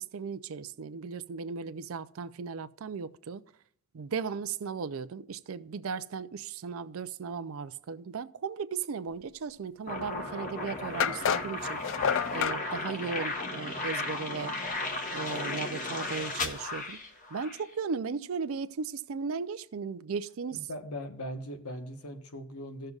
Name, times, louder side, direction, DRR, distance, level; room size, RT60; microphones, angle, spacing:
voice 1, 0.0-3.4 3.9-11.8 12.3-14.6 15.1-17.0 17.3-20.7, right 5 dB, 70° right, 0.4 m, -36 dB
sound 1, 9.9-17.7, left 2 dB, 35° left, 1.1 m, -35 dB
sound 2, 10.2-10.3 11.0-12.6, left 8 dB, 60° left, 0.3 m, -29 dB
voice 2, 20.5-22.9, equal, 85° left, 1.2 m, -40 dB
16.5 x 6.6 x 2.4 m
head